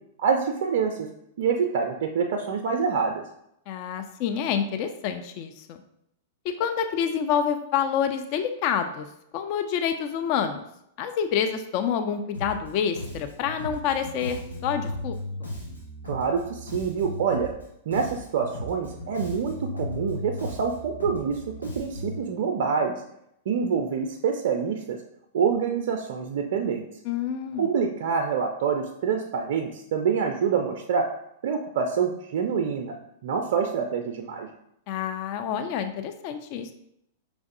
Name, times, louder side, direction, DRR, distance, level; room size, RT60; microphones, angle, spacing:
voice 1, 0.2-1.1 1.4-3.2 16.1-17.5 17.9-23.0 23.5-25.0 25.3-26.9 27.6-31.1 31.4-32.9 33.2-34.5, right 6 dB, 60° right, 4 dB, 0.4 m, -26 dB
voice 2, 3.7-5.8 6.4-9.1 9.3-10.6 11.0-15.1 27.0-27.7 34.9-36.7, left 8 dB, 45° left, 7 dB, 0.4 m, -27 dB
Bass guitar, 12.3-12.7 12.9-17.6 17.9-22.2, left 1 dB, 90° left, 1.5 m, -36 dB
5.2 x 3.5 x 2.5 m, 0.76 s
figure-of-eight pair, 100°, 0 cm